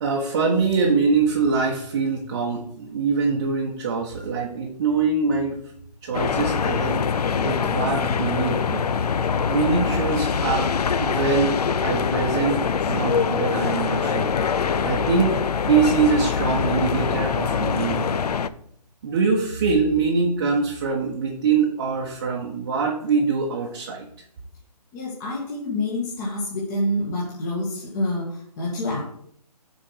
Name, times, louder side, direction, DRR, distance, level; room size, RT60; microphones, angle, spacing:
voice 1, 0.0-5.6 6.0-8.9 9.5-14.3 14.6-18.2 19.0-24.1, right 5 dB, 30° right, -1 dB, 1.0 m, -24 dB
sound 1, 6.1-18.5, left 6 dB, 70° left, 0.5 m, -24 dB
voice 2, 24.9-29.0, left 1 dB, 25° left, -4 dB, 1.6 m, -27 dB
6.5 x 4.5 x 6.2 m, 0.66 s
hypercardioid pair, 160°, 21 cm